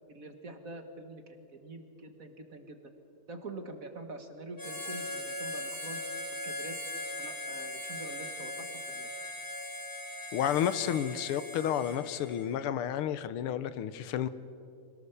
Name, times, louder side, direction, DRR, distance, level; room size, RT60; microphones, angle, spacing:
voice 1, 0.1-2.8 3.3-6.0 6.3-6.8 7.2-9.1, right 2 dB, 40° right, 6 dB, 1.7 m, -45 dB
Harmonica, 4.6-12.6, left 1 dB, 10° left, 1.5 m, -39 dB
voice 2, 10.3-14.3, left 10 dB, 85° left, 14 dB, 1.7 m, -31 dB
25.0 x 18.5 x 6.9 m, 2.5 s
omnidirectional pair, 2.4 m